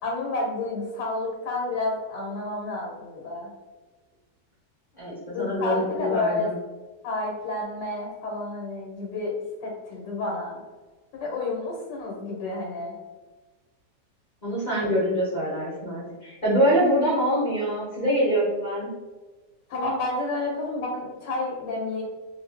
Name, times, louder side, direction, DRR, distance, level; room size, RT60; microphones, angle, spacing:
voice 1, 0.0-3.5 5.3-6.5 7.0-9.3 9.6-10.6 11.2-12.9 19.7-22.0, left 2 dB, 80° left, -2 dB, 1.3 m, -30 dB
voice 2, 5.0-6.5 14.4-18.9, equal, 35° left, -8 dB, 0.7 m, -24 dB
2.6 x 2.5 x 3.3 m, 1.3 s
omnidirectional pair, 1.9 m